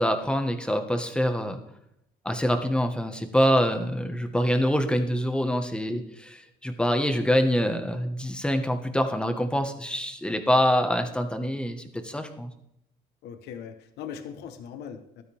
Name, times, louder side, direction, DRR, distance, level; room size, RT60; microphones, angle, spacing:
voice 1, 0.0-1.6 2.2-12.5, equal, 5° left, 6 dB, 1.6 m, -25 dB
voice 2, 13.2-15.2, left 8 dB, 80° left, 8 dB, 1.4 m, -40 dB
14.5 x 12.5 x 3.6 m, 0.77 s
cardioid pair, 110°, 17 cm